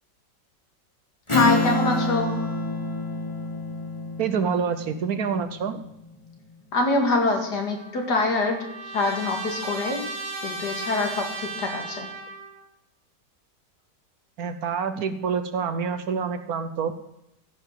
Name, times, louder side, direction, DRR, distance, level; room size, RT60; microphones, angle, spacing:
voice 1, 1.3-2.3 6.7-8.6 8.9-10.0 10.4-12.1, left 3 dB, 70° left, 3 dB, 2.6 m, -24 dB
Strum, 1.3-6.2, left 2 dB, 15° left, 1.8 m, -27 dB
voice 2, 4.2-5.8 14.4-16.9, right 6 dB, 65° right, 10 dB, 1.1 m, -27 dB
Trumpet, 7.7-12.6, right 2 dB, 85° right, 2.8 m, -35 dB
14.5 x 5.8 x 7.4 m, 0.83 s
omnidirectional pair, 1.9 m